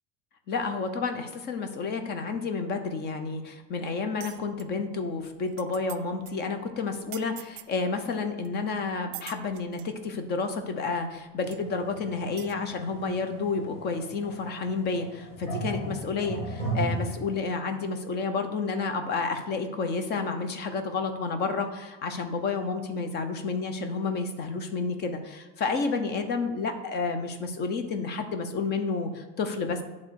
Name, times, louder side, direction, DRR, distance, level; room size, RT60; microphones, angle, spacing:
voice 1, 0.5-29.8, left 4 dB, 35° left, 7 dB, 0.7 m, -30 dB
sound 1, 4.2-4.6 5.2-5.3 5.5-6.0 6.3-6.4 7.1-7.7 8.4-8.5 9.1-9.9 10.9-11.0 11.5-11.6 12.4-12.6, right 16 dB, 65° right, 0.5 m, -43 dB
sound 2, 11.4-17.2, right 2 dB, 20° left, 2.4 m, -36 dB
8.9 x 3.6 x 6.3 m, 1.1 s
cardioid pair, 175°, 30 cm